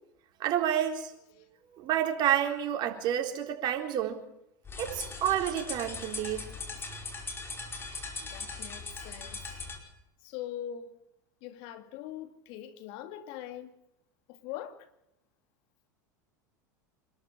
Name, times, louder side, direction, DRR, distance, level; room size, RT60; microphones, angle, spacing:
voice 1, 0.4-1.1 1.7-4.2 4.8-6.5, right 10 dB, 50° right, 3.9 m, -29 dB
sound 1, 4.7-9.8, left 3 dB, 25° left, 4.9 m, -40 dB
voice 2, 8.2-9.4 10.2-11.0 11.4-13.7 14.3-14.9, left 11 dB, 60° left, 2.6 m, -42 dB
26.5 x 13.0 x 8.7 m
hypercardioid pair, 95°, 10 cm